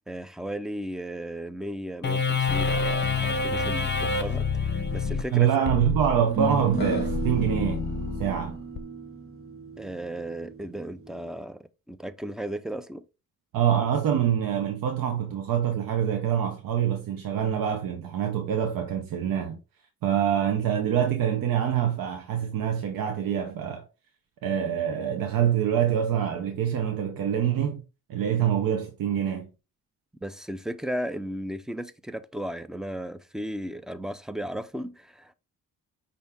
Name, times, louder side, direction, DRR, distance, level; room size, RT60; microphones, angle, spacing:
voice 1, 0.1-5.5 9.8-13.0 30.2-35.3, right 1 dB, ahead, 0.4 m, -35 dB
sound 1, 2.0-8.8, left 4 dB, 30° left, 0.8 m, -28 dB
sound 2, 5.1-5.2 6.2-11.4, right 5 dB, 40° right, 1.3 m, -35 dB
voice 2, 5.3-7.9 8.2-8.6 13.5-19.6 20.0-23.8 24.4-27.8 28.1-29.5, right 9 dB, 90° right, 0.7 m, -25 dB
5.5 x 2.7 x 3.4 m
cardioid pair, 80°, 33 cm